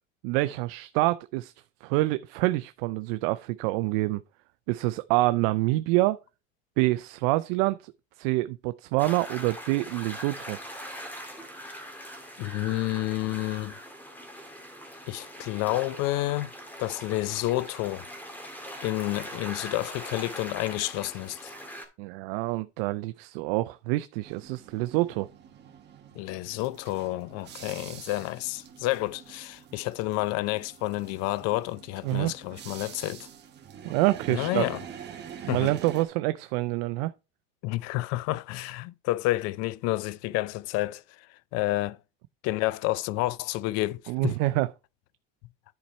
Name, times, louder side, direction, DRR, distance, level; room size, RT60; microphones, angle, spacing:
voice 1, 0.2-1.5 1.8-4.2 4.7-6.2 6.8-7.9 8.2-10.6 22.0-25.3 32.0-32.3 33.8-34.7 35.4-37.1 44.1-44.7, right 19 dB, 70° right, 0.5 m, -26 dB
sound 1, 9.0-21.9, equal, 5° left, 1.8 m, -42 dB
voice 2, 12.4-13.7 15.1-16.5 16.8-18.1 18.8-21.5 26.2-33.3 34.3-34.8 35.5-35.7 37.6-41.3 41.5-42.0 42.4-44.4, left 18 dB, 55° left, 0.5 m, -30 dB
sound 2, 24.2-36.0, right 8 dB, 35° right, 1.5 m, -46 dB
10.5 x 4.2 x 4.3 m
supercardioid pair, 130°, 31 cm